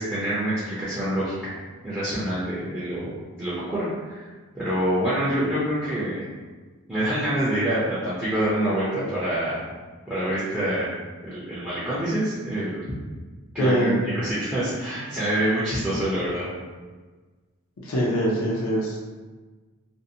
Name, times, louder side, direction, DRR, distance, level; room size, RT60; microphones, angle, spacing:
voice 1, 0.0-1.5 1.8-4.2 4.5-6.3 6.9-9.6 10.1-10.9 11.2-12.8 13.5-16.4, right 1 dB, 5° right, -12 dB, 0.5 m, -26 dB
voice 2, 13.6-14.0 17.8-19.0, equal, 65° left, -4 dB, 0.5 m, -23 dB
2.6 x 2.0 x 2.6 m, 1.4 s
head